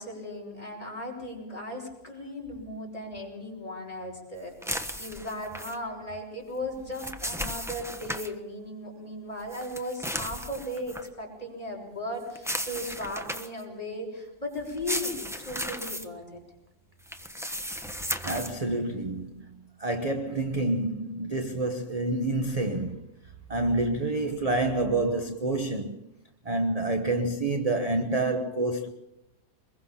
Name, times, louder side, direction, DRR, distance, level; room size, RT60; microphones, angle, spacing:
voice 1, 0.0-16.4, left 1 dB, 20° left, 5.6 m, -37 dB
sound 1, 4.6-5.8 6.7-8.3 9.5-11.1 12.4-13.6 14.7-16.1 17.1-18.5, equal, ahead, 1.0 m, -35 dB
voice 2, 18.2-23.1 23.5-26.0 26.4-28.9, right 2 dB, 25° right, 1.1 m, -28 dB
24.0 x 21.5 x 5.7 m
omnidirectional pair, 1.7 m